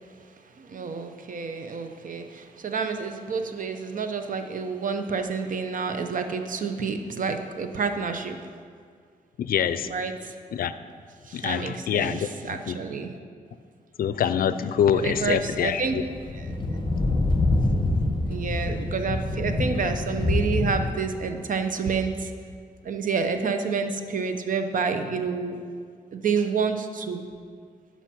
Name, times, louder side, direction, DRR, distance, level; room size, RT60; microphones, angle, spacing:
voice 1, 0.5-8.4 9.9-10.3 11.3-13.1 14.9-16.0 16.3-16.5 18.3-22.3 22.8-25.6 26.1-27.2, right 5 dB, 65° right, 7 dB, 0.8 m, -29 dB
voice 2, 9.4-9.9 10.5-10.7 11.3-12.3 12.7-12.8 14.0-16.0, left 8 dB, 80° left, 13 dB, 0.4 m, -25 dB
sound 1, 15.0-20.9, left 2 dB, 35° left, 1.1 m, -26 dB
10.0 x 5.7 x 6.1 m, 2.1 s
wide cardioid pair, 120°, 15 cm